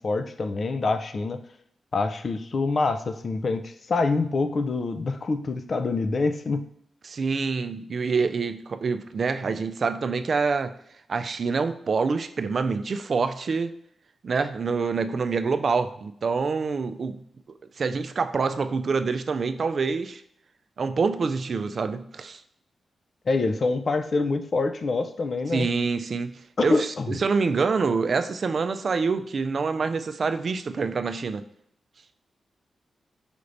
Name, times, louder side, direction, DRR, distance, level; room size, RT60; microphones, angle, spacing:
voice 1, 0.0-1.4 1.9-6.6 23.3-25.7 26.6-27.2, left 3 dB, 55° left, 8 dB, 0.4 m, -26 dB
voice 2, 7.0-10.8 11.1-13.7 14.2-17.2 17.8-20.2 20.8-22.4 25.5-31.4, right 4 dB, 60° right, 10 dB, 0.3 m, -26 dB
5.0 x 3.2 x 2.6 m, 0.71 s
cardioid pair, 60°, 0 cm